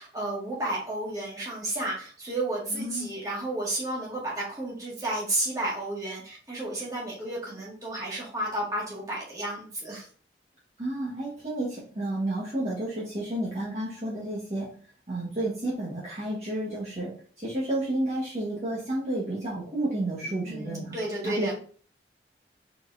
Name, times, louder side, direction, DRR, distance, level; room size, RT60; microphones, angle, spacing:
voice 1, 0.0-10.1 20.4-21.5, right 1 dB, 20° right, -5 dB, 1.9 m, -32 dB
voice 2, 2.7-3.1 10.8-14.7 15.1-17.1 17.4-21.0 21.2-21.5, right 1 dB, 40° right, -6 dB, 1.5 m, -31 dB
4.7 x 4.1 x 2.7 m, 0.43 s
head